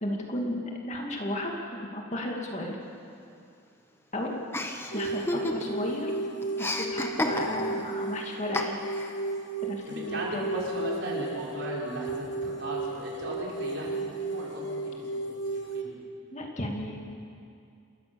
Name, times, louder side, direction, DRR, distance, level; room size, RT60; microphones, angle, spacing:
voice 1, 0.0-1.5 1.8-2.8 4.1-4.4 4.9-6.1 6.6-8.8 9.6-10.4 16.3-17.0, left 1 dB, 35° left, 0 dB, 2.4 m, -33 dB
Chuckle chortle, 4.5-5.9 6.2-7.8 8.5-9.1, left 1 dB, 10° left, 1.1 m, -31 dB
sound 1, 4.9-15.8, right 2 dB, 60° left, 1.4 m, -34 dB
voice 2, 9.9-15.9, right 1 dB, 60° right, -4 dB, 5.0 m, -37 dB
28.5 x 14.5 x 7.1 m, 2.5 s
head